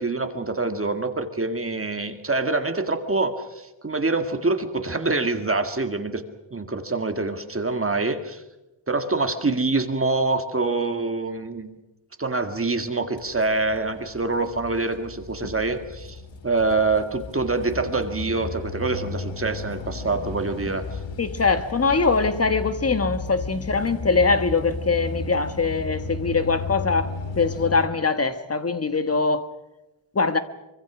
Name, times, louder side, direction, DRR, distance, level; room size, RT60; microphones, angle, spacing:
voice 1, 0.0-6.2 6.5-8.4 8.9-11.7 12.2-16.2 16.4-21.0, right 3 dB, 25° right, 1.9 m, -25 dB
sound 1, 13.2-27.9, left 4 dB, 60° left, 2.1 m, -34 dB
voice 2, 21.2-29.5 30.1-30.4, left 4 dB, 30° left, 1.5 m, -22 dB
25.0 x 24.5 x 6.2 m
wide cardioid pair, 160°, 50 cm